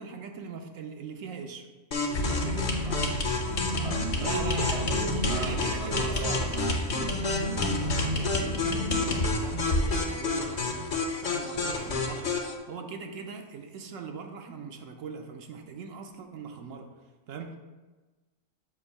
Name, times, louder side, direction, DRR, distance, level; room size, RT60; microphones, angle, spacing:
voice 1, 0.0-1.6 4.1-4.9 5.4-6.7 7.5-10.9 11.2-12.3 12.7-16.9 17.3-17.6, right 5 dB, 80° right, 3 dB, 1.0 m, -40 dB
sound 1, 1.9-12.5, left 3 dB, 45° left, 0.7 m, -31 dB
sound 2, 2.1-10.0, left 1 dB, 60° left, 1.3 m, -30 dB
voice 2, 2.1-3.4 3.8-6.6, right 2 dB, 35° right, 2 dB, 0.6 m, -37 dB
7.1 x 2.6 x 5.3 m, 1.2 s
omnidirectional pair, 1.4 m